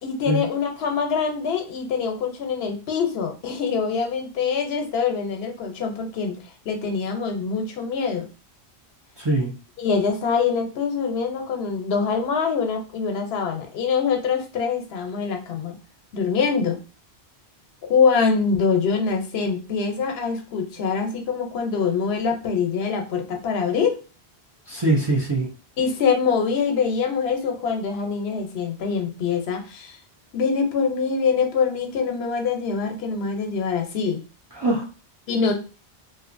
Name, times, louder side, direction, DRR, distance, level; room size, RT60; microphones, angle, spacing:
voice 1, 0.0-6.4 6.7-8.3 9.8-15.7 16.1-16.8 17.8-24.0 25.8-30.0 30.3-34.2 35.3-35.5, left 5 dB, 75° left, 4 dB, 0.9 m, -24 dB
voice 2, 9.2-9.5 24.7-25.5 34.6-34.8, right 2 dB, 30° right, -3 dB, 0.5 m, -22 dB
2.7 x 2.4 x 2.5 m, 0.34 s
omnidirectional pair, 1.1 m